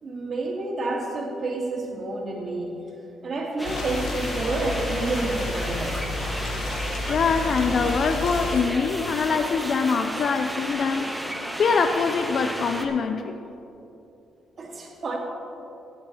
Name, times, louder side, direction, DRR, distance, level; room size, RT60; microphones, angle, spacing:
voice 1, 0.0-2.8 3.2-6.0 14.6-15.2, right 2 dB, 45° right, 0 dB, 2.3 m, -29 dB
sound 1, 3.6-8.6, left 2 dB, 80° left, 0.8 m, -31 dB
sound 2, 3.6-12.9, right 1 dB, 5° right, 1.2 m, -33 dB
voice 2, 7.1-11.1 11.6-13.4, left 5 dB, 55° left, 7 dB, 0.5 m, -24 dB
17.0 x 7.8 x 4.2 m, 2.9 s
cardioid pair, 90°, 0 cm